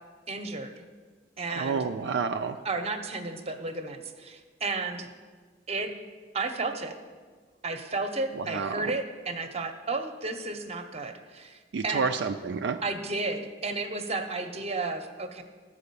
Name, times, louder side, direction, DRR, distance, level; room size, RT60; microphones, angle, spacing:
voice 1, 0.3-0.8 1.4-1.9 2.6-5.1 5.7-5.9 6.3-6.9 7.6-12.1 12.8-15.4, right 3 dB, 35° right, 7 dB, 0.8 m, -33 dB
voice 2, 1.5-2.6 8.5-8.9 11.7-12.8, right 5 dB, 70° right, 5 dB, 0.4 m, -29 dB
12.5 x 4.9 x 6.8 m, 1.5 s
head